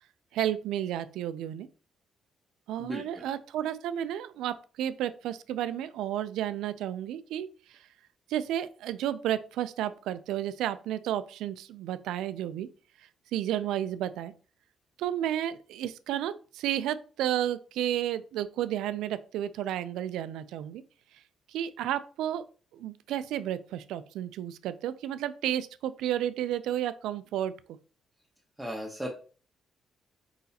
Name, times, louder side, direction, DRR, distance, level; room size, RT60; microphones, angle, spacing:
voice 1, 0.3-1.7 2.7-7.8 8.3-12.7 13.3-14.3 15.0-20.8 21.5-22.4 22.7-27.5, right 11 dB, 90° right, 13 dB, 0.3 m, -32 dB
voice 2, 2.8-3.2 28.6-29.1, equal, 5° right, -3 dB, 1.1 m, -36 dB
4.8 x 4.0 x 2.8 m, 0.37 s
cardioid pair, 90°, 0 cm